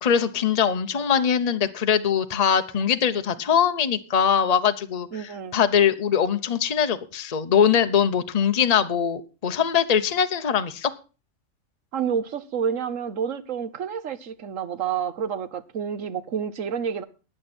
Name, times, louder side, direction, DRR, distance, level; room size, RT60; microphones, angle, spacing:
voice 1, 0.0-10.9, left 7 dB, 35° left, 0.9 m, -22 dB
voice 2, 5.1-5.6 11.9-17.0, right 7 dB, 65° right, 1.3 m, -29 dB
15.5 x 10.0 x 4.3 m
omnidirectional pair, 1.5 m